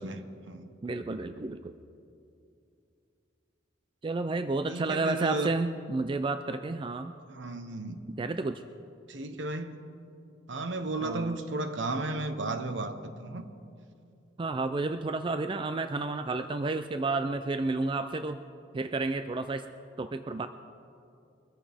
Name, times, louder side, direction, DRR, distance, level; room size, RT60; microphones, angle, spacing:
voice 1, 0.0-0.7 4.7-5.5 7.3-8.0 9.1-9.8 10.5-13.5, right 2 dB, 70° right, 8 dB, 1.0 m, -34 dB
voice 2, 0.8-1.7 4.0-7.1 8.1-8.6 11.0-11.4 14.4-18.4 18.7-19.7 20.0-20.5, right 3 dB, 25° right, 9 dB, 0.4 m, -31 dB
23.5 x 14.0 x 3.5 m, 2.5 s
head